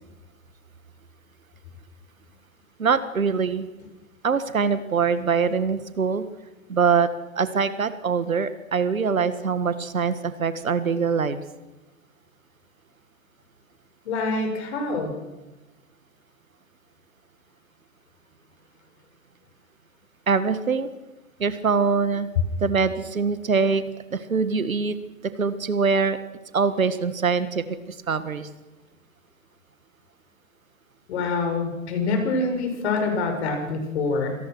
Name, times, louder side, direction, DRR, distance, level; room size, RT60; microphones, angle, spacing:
voice 1, 2.8-3.7 4.2-6.3 6.7-7.1 7.3-11.4 20.3-20.9 21.4-22.3 22.6-23.8 24.1-25.0 25.4-26.2 26.5-28.5, right 5 dB, 75° right, 13 dB, 1.7 m, -23 dB
voice 2, 14.0-15.1 31.1-34.4, left 3 dB, 50° left, 4 dB, 6.3 m, -25 dB
26.0 x 18.5 x 6.3 m, 1.1 s
figure-of-eight pair, 105°, 41 cm